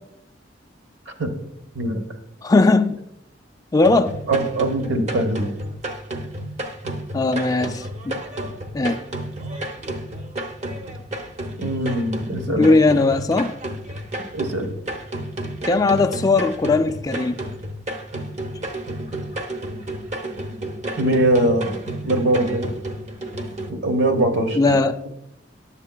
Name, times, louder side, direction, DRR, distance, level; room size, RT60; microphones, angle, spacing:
voice 1, 2.4-2.9 3.7-4.1 7.1-8.2 8.7-9.0 12.5-13.5 15.7-17.4 24.6-25.0, left 3 dB, 20° left, 0.3 m, -18 dB
sound 1, 3.8-23.7, right 1 dB, 40° right, 0.7 m, -32 dB
voice 2, 4.3-5.5 11.6-12.7 14.3-14.7 21.0-21.8 22.0-22.7 23.7-24.8, right 1 dB, 70° right, 1.0 m, -21 dB
10.5 x 7.3 x 2.2 m
head